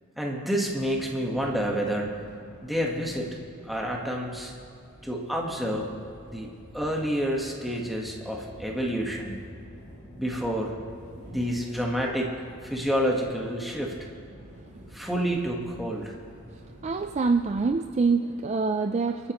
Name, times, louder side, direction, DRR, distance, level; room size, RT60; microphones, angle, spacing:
voice 1, 0.2-2.3 2.6-3.3 3.6-4.5 5.0-5.9 6.3-9.4 10.2-10.8 11.3-12.3 12.6-13.9 14.9-16.2, equal, ahead, -1 dB, 1.4 m, -29 dB
sound 1, 0.7-18.0, equal, 35° left, 2.7 m, -49 dB
voice 2, 16.8-19.3, right 4 dB, 30° right, 6 dB, 0.4 m, -25 dB
28.5 x 9.4 x 3.0 m, 2.6 s
head